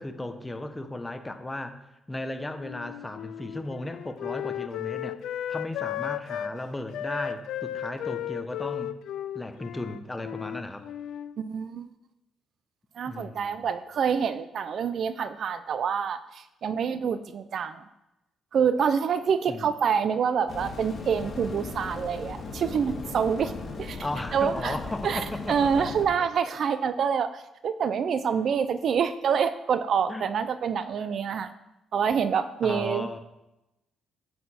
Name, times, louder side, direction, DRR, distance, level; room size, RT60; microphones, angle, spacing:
voice 1, 0.0-1.7 2.1-5.1 5.5-8.9 9.3-10.9 13.0-13.7 19.5-19.6 24.0-25.9 30.1-30.2 32.6-33.2, left 2 dB, 15° left, 8 dB, 0.9 m, -35 dB
Wind instrument woodwind instrument, 2.6-6.5 6.9-11.3, left 11 dB, 80° left, 0.4 m, -35 dB
voice 2, 11.4-11.9 13.0-17.8 18.5-23.5 23.8-24.0 24.3-24.8 25.0-31.5 31.9-33.1, right 7 dB, 60° right, 13 dB, 0.5 m, -27 dB
sound 1, 20.5-26.0, left 3 dB, 45° left, 2.6 m, -38 dB
9.1 x 6.6 x 4.3 m, 0.94 s
cardioid pair, 90°, 0 cm